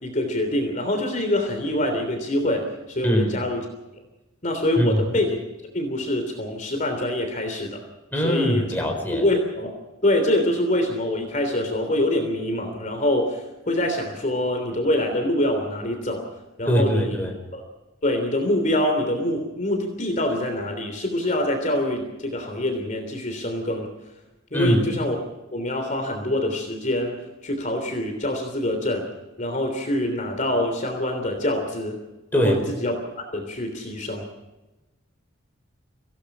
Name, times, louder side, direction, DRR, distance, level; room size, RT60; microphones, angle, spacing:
voice 1, 0.0-3.6 4.4-5.4 5.7-7.8 8.2-8.7 9.1-9.7 10.0-16.3 16.6-17.3 17.5-17.6 18.0-23.9 24.5-25.2 25.5-27.2 27.4-29.1 29.4-32.0 32.3-34.3, left 1 dB, 40° left, 4 dB, 3.3 m, -25 dB
voice 2, 4.8-5.1 8.1-9.2 16.6-17.3 24.5-24.8 32.3-32.6, equal, 10° left, 2 dB, 4.9 m, -22 dB
25.5 x 17.5 x 6.1 m, 1.0 s
head